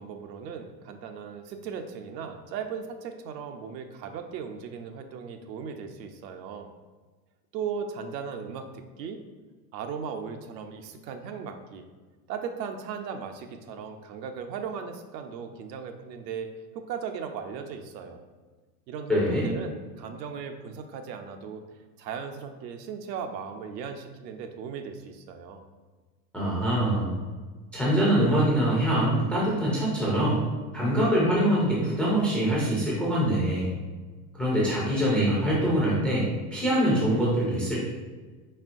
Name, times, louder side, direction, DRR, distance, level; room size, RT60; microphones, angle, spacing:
voice 1, 0.0-6.7 7.5-9.2 9.7-11.8 12.3-16.5 16.9-18.2 18.9-21.6 22.0-25.6, right 6 dB, 80° right, 6 dB, 0.7 m, -37 dB
voice 2, 19.1-19.5 26.3-27.1 27.7-30.4 30.7-33.7 34.3-36.3 36.5-37.8, right 1 dB, 5° left, -6 dB, 0.3 m, -24 dB
4.3 x 3.6 x 2.5 m, 1.3 s
supercardioid pair, 130°, 50 cm